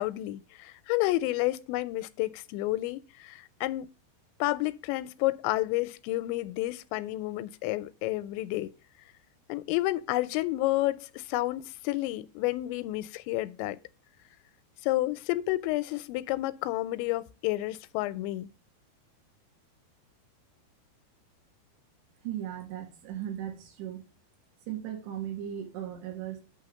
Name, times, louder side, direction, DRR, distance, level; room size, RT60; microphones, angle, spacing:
voice 1, 0.0-3.9 4.4-8.7 9.5-13.8 14.8-18.5, left 17 dB, 90° left, 2.8 m, -30 dB
voice 2, 22.2-24.0 24.7-26.4, right 11 dB, 80° right, 3.9 m, -37 dB
8.8 x 3.5 x 6.3 m
omnidirectional pair, 5.1 m